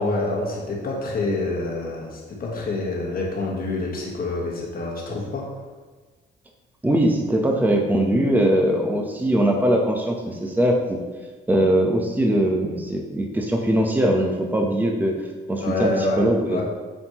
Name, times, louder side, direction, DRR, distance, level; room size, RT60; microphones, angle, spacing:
voice 1, 0.0-5.5 15.6-16.6, left 2 dB, 45° left, -2 dB, 1.4 m, -27 dB
voice 2, 6.8-11.0 11.5-15.1 15.5-15.9 16.2-16.6, right 1 dB, 10° right, 1 dB, 0.8 m, -21 dB
7.7 x 4.3 x 3.0 m, 1.4 s
cardioid pair, 90°, 20 cm